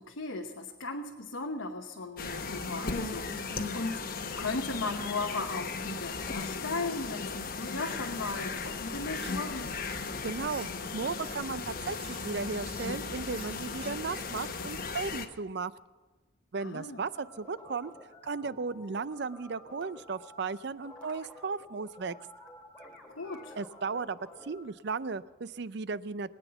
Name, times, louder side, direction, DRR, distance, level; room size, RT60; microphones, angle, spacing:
voice 1, 0.0-9.7 16.6-17.0 23.1-23.5, left 3 dB, 85° left, 2 dB, 1.0 m, -37 dB
sound 1, 2.2-15.3, left 4 dB, 45° left, 1.0 m, -36 dB
sound 2, 9.2-9.4 9.7-9.8 10.2-10.7 11.2-11.4 11.9-12.2 12.6-12.9 13.3-13.5 13.8-13.9 14.2-14.3, right 4 dB, 30° right, 2.5 m, -50 dB
voice 2, 10.2-15.7 16.5-17.9 18.2-22.2 23.6-26.3, right 4 dB, 55° right, 16 dB, 0.5 m, -35 dB
sound 3, 17.1-24.6, left 1 dB, 5° left, 2.7 m, -51 dB
22.0 x 9.3 x 6.9 m, 1.2 s
head